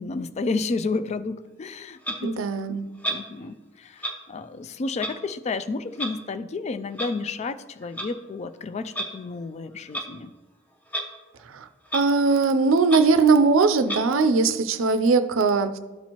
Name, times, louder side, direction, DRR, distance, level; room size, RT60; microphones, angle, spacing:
voice 1, 0.0-2.8 3.1-10.3, left 3 dB, 35° left, 13 dB, 0.3 m, -31 dB
Clock, 2.0-2.2 3.0-3.2 4.0-4.1 5.0-5.1 6.0-6.1 7.0-7.1 7.8-8.1 8.9-9.1 9.9-10.1 10.9-11.0 11.4-11.5 11.8-12.0 12.4-12.5 12.8-13.0 13.8-14.0, right 1 dB, 10° left, 0.8 m, -30 dB
voice 2, 2.2-2.9 11.5-11.7 11.9-15.8, right 4 dB, 80° right, 11 dB, 0.5 m, -20 dB
13.0 x 4.3 x 2.9 m, 1.2 s
head